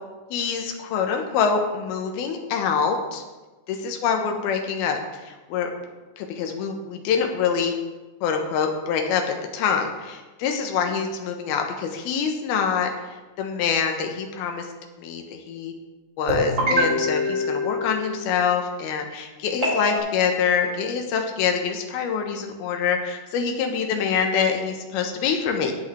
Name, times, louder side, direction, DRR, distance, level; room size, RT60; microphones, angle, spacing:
voice 1, 0.3-3.2 3.7-5.7 6.2-7.7 8.2-9.2 9.5-12.9 13.4-14.7 15.0-15.7 16.2-25.7, left 6 dB, 70° left, 4 dB, 2.7 m, -25 dB
sound 1, 16.3-18.4 19.6-20.0, left 1 dB, 25° right, 3.5 m, -24 dB
19.0 x 6.3 x 3.4 m, 1.2 s
omnidirectional pair, 5.1 m